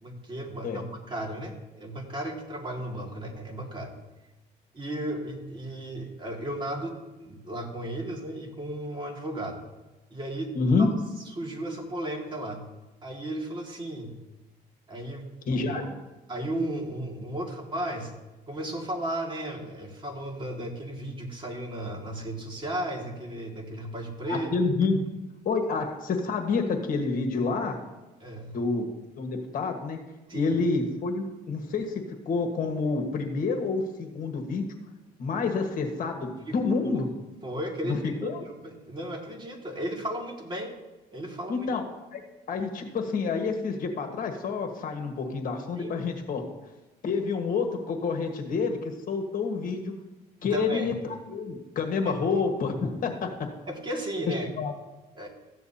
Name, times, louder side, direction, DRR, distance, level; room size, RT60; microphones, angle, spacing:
voice 1, 0.0-3.9 4.7-6.9 7.2-9.6 10.1-10.5 10.8-10.9 11.4-12.7 13.0-14.2 14.9-15.3 15.5-15.6 16.3-18.1 18.5-24.5 28.2-28.6 30.3-30.6 36.5-37.0 37.4-38.3 38.6-40.8 41.1-41.7 45.8-46.0 50.5-50.9 52.0-52.1 53.7-54.5 55.2-55.3, right 1 dB, 30° right, 0 dB, 2.1 m, -34 dB
voice 2, 10.5-10.9 15.5-15.9 24.3-25.0 25.4-27.8 28.5-28.9 29.2-30.0 30.3-34.7 35.2-37.1 37.8-38.4 41.5-41.8 42.1-42.2 42.5-46.4 47.0-49.9 50.4-53.5 54.4-54.7, left 4 dB, 55° left, 3 dB, 1.5 m, -28 dB
14.0 x 9.3 x 2.8 m, 1.1 s
cardioid pair, 110°, 17 cm